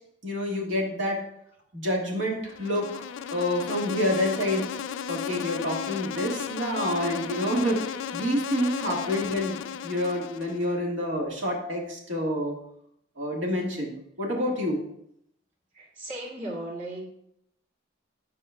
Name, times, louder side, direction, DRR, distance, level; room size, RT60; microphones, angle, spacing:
voice 1, 0.2-1.2 1.7-4.6 5.1-9.6 9.8-12.5 13.2-13.9 14.2-14.9, left 1 dB, 80° right, -1 dB, 1.6 m, -28 dB
Insect, 2.5-10.7, left 9 dB, 85° left, 0.3 m, -34 dB
voice 2, 8.5-9.0 15.7-17.1, right 1 dB, 45° right, -4 dB, 2.1 m, -37 dB
10.0 x 5.1 x 2.3 m, 0.73 s
head